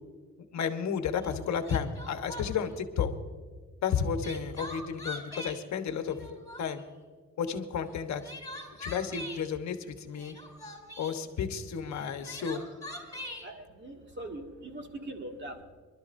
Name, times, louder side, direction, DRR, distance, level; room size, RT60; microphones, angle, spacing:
voice 1, 0.5-3.1 3.8-6.2 6.6-6.8 7.4-8.2 8.8-10.3 11.0-12.6, left 7 dB, 65° left, 7 dB, 1.2 m, -32 dB
Crying sobbing, 1.2-1.3 1.6-2.7 3.9-5.6 6.1-6.9 7.9-9.4 10.1-11.2 11.9-13.5, left 1 dB, 10° left, 3.7 m, -42 dB
voice 2, 13.4-15.6, right 1 dB, 40° right, 2 dB, 2.2 m, -41 dB
26.5 x 12.0 x 2.6 m, 1.5 s
cardioid pair, 90°, 30 cm